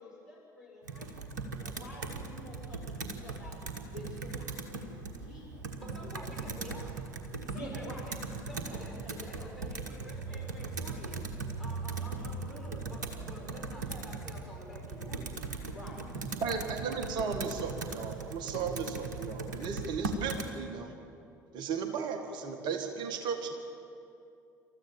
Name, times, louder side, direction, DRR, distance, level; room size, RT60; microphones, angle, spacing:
voice 1, 0.0-3.6 3.9-5.6 7.5-8.1 8.5-9.5 10.2-10.8 12.0-12.4 15.7-16.0 16.4-16.6, left 1 dB, 80° left, -6 dB, 6.0 m, -49 dB
Computer keyboard, 0.9-20.5, right 3 dB, 75° right, 1.4 m, -39 dB
voice 2, 5.8-7.0 7.5-8.2 8.5-11.3 11.6-15.4, equal, ahead, -3 dB, 7.0 m, -49 dB
voice 3, 16.2-20.9 21.5-23.5, right 5 dB, 50° right, 6 dB, 1.8 m, -35 dB
27.0 x 13.5 x 7.2 m, 2.6 s
figure-of-eight pair, 60°, 10 cm